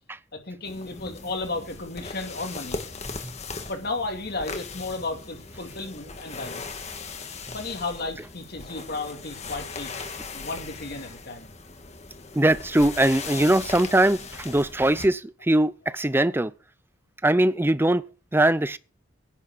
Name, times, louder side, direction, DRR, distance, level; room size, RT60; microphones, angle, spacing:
voice 1, 0.3-2.8 3.7-6.8 7.5-9.9 10.3-11.5, left 3 dB, 55° left, 2.6 m, -33 dB
sound 1, 0.6-15.1, left 4 dB, 35° left, 1.8 m, -38 dB
voice 2, 12.3-16.5 17.2-18.0 18.3-18.8, right 1 dB, 10° right, 0.5 m, -21 dB
11.0 x 7.1 x 8.2 m
head